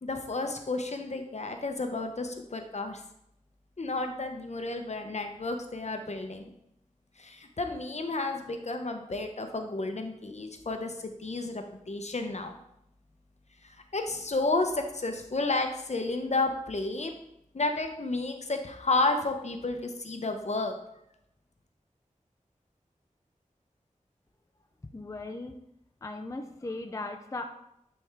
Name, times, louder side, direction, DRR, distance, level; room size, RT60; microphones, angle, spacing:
voice 1, 0.0-3.0 3.8-6.5 7.2-12.5 13.6-17.1 17.5-20.8, left 2 dB, 55° left, 5 dB, 0.8 m, -31 dB
voice 2, 24.9-25.5 26.0-27.4, left 2 dB, 25° left, 4 dB, 0.5 m, -37 dB
9.3 x 3.5 x 3.4 m, 0.79 s
wide cardioid pair, 60°, 13 cm